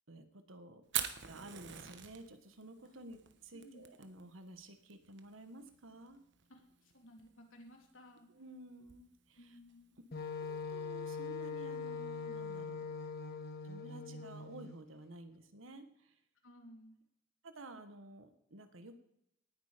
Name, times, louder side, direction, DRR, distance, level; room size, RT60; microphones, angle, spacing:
voice 1, 0.1-0.8 1.3-6.2 8.3-9.6 10.4-12.9 13.6-16.1 17.4-19.0, right 1 dB, 85° right, 8 dB, 1.5 m, -52 dB
Fire, 0.8-10.6, right 10 dB, 60° right, 1.2 m, -46 dB
voice 2, 6.5-8.3 9.4-10.0 16.4-16.9, equal, 90° left, 1 dB, 3.3 m, -57 dB
Wind instrument woodwind instrument, 10.1-14.8, left 5 dB, 50° left, 1.1 m, -42 dB
18.5 x 8.7 x 5.2 m, 0.79 s
head